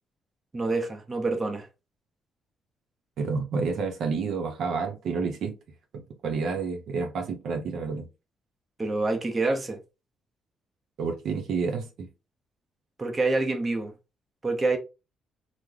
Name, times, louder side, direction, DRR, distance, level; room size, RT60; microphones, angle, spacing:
voice 1, 0.5-1.7 8.8-9.8 13.0-13.9 14.4-14.8, right 3 dB, 25° right, 0.8 m, -26 dB
voice 2, 3.2-5.5 5.9-8.1 11.0-12.1, right 4 dB, 70° right, 0.7 m, -29 dB
3.1 x 2.1 x 3.7 m
cardioid pair, 90°, 0 cm